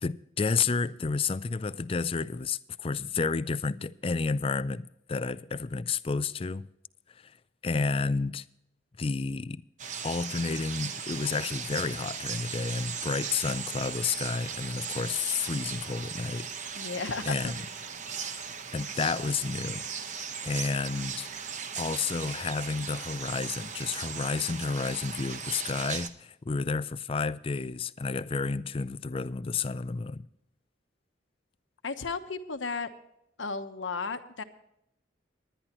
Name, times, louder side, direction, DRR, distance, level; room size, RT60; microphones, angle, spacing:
voice 1, 0.0-6.7 7.2-7.3 7.6-8.4 9.0-9.6 10.0-16.5 17.3-17.6 18.2-18.4 18.7-19.9 20.4-21.3 21.8-30.3, left 4 dB, 30° left, 0.4 m, -31 dB
sound 1, 9.8-26.1, right 6 dB, 40° right, 0.9 m, -38 dB
voice 2, 16.7-17.5 31.8-32.9 33.4-34.4, left 4 dB, 75° left, 1.1 m, -34 dB
20.5 x 10.5 x 3.0 m
head